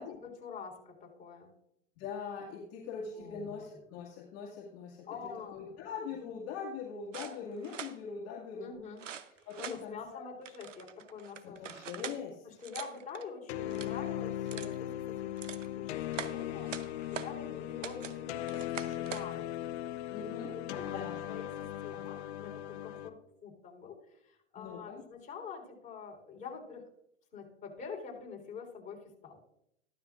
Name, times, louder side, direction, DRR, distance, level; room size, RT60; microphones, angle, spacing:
voice 1, 0.0-1.5 3.2-3.6 5.1-5.8 8.6-9.0 9.4-11.7 12.4-15.3 15.6-19.5 20.5-26.8 27.3-29.4, left 5 dB, 20° left, -1 dB, 4.0 m, -46 dB
voice 2, 2.0-8.8 9.5-10.3 11.4-12.5 20.1-21.3 24.6-25.0, left 6 dB, 40° left, -3 dB, 2.1 m, -42 dB
sound 1, 7.1-8.0 9.0-9.8 10.5-12.2 12.6-13.2 13.6-14.0 14.5-14.8 15.2-15.7 16.1-17.3 17.8-18.2 18.5-19.3, right 8 dB, 90° right, 0.9 m, -43 dB
sound 2, 13.5-23.1, left 12 dB, 60° left, 0.9 m, -38 dB
14.0 x 12.5 x 2.6 m, 0.77 s
hypercardioid pair, 105°, 36 cm